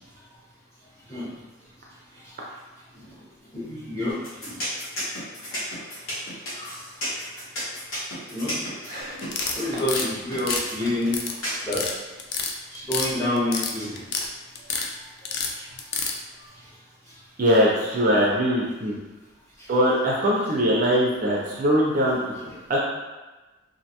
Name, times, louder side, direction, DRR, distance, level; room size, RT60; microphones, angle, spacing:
voice 1, 3.5-4.1 4.4-4.5 6.6-6.7 8.3-8.6 9.5-11.2 11.6-11.8 12.7-14.0 22.4-22.5, left 1 dB, 15° left, -9 dB, 0.8 m, -27 dB
sound 1, 4.1-11.6, equal, 70° left, 1.0 m, -32 dB
sound 2, 9.2-10.1 10.4-11.3 11.6-11.9 12.2-13.1 13.4-14.3 14.5-14.9 15.2-16.1, left 5 dB, 55° left, 0.3 m, -28 dB
voice 2, 17.4-18.9 19.7-22.2 22.7-22.8, equal, 40° right, -4 dB, 0.4 m, -21 dB
2.5 x 2.2 x 2.8 m, 1.2 s
head